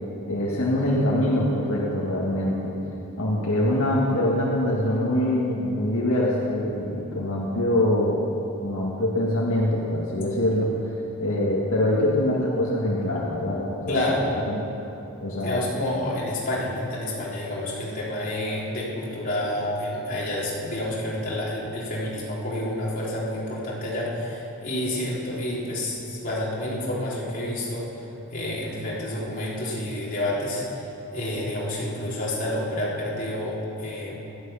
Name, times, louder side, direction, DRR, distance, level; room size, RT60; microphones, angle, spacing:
voice 1, 0.3-2.7 3.2-8.2 8.6-10.9 11.2-14.0 14.5-14.6 15.2-15.6, left 1 dB, 70° left, -4 dB, 1.9 m, -24 dB
voice 2, 13.9-14.3 15.4-27.9 28.3-34.2, left 1 dB, 40° left, -6 dB, 3.8 m, -29 dB
17.5 x 13.0 x 5.7 m, 2.9 s
head